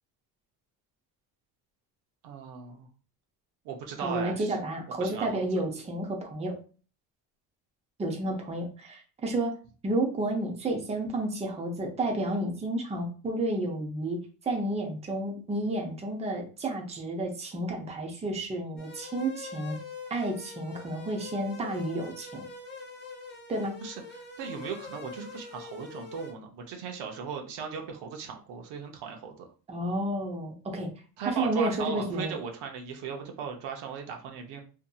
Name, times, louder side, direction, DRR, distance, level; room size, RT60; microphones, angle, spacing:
voice 1, 2.2-2.9 3.6-4.6 5.0-5.5 8.4-8.7 23.8-29.5 31.2-34.6, right 6 dB, 80° right, 3 dB, 0.7 m, -38 dB
voice 2, 4.0-6.6 8.0-9.6 9.8-19.8 20.1-22.5 23.5-23.8 29.7-30.9 31.3-32.3, right 1 dB, 15° right, 1 dB, 0.6 m, -31 dB
sound 1, 18.8-26.3, left 4 dB, 25° left, 0.9 m, -44 dB
2.7 x 2.6 x 2.3 m, 0.37 s
cardioid pair, 120°, 40 cm